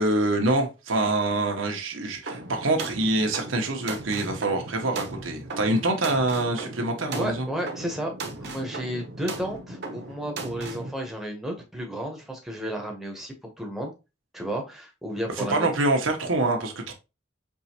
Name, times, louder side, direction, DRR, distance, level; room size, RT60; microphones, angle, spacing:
voice 1, 0.0-7.5 15.4-16.9, right 2 dB, 90° right, 1.0 m, -25 dB
sound 1, 2.3-10.9, right 3 dB, 55° right, 0.8 m, -37 dB
voice 2, 7.1-8.1 8.4-13.9 14.3-15.7, equal, ahead, 0.8 m, -32 dB
4.6 x 3.0 x 2.8 m
head